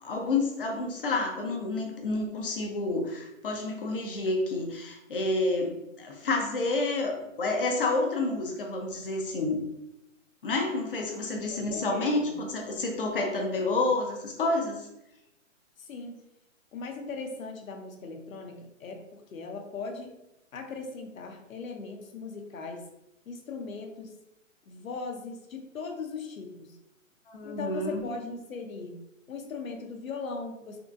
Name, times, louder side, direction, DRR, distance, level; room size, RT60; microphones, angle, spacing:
voice 1, 0.0-9.6 10.4-14.9 27.3-28.0, left 2 dB, 45° left, 2 dB, 0.6 m, -29 dB
voice 2, 11.3-12.4 15.8-16.2 16.7-20.2 20.5-22.9 23.3-24.1 24.7-26.8 27.4-29.0 29.3-30.8, left 4 dB, 85° left, 4 dB, 0.7 m, -39 dB
3.6 x 2.5 x 2.4 m, 0.88 s
hypercardioid pair, 165°, 40 cm